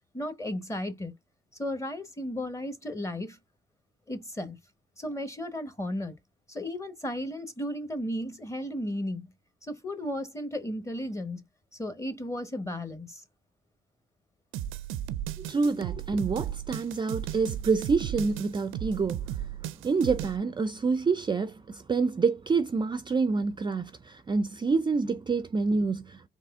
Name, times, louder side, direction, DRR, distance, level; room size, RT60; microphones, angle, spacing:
voice 1, 0.1-1.2 1.6-3.4 4.1-4.6 5.0-6.2 6.5-9.3 9.6-11.4 11.7-13.2, left 1 dB, 15° left, 1.1 m, -34 dB
sound 1, 14.5-20.4, right 11 dB, 85° right, 0.5 m, -35 dB
voice 2, 15.4-19.5 19.8-26.3, right 4 dB, 25° right, 0.4 m, -27 dB
4.1 x 3.0 x 3.5 m
cardioid pair, 90°, 20 cm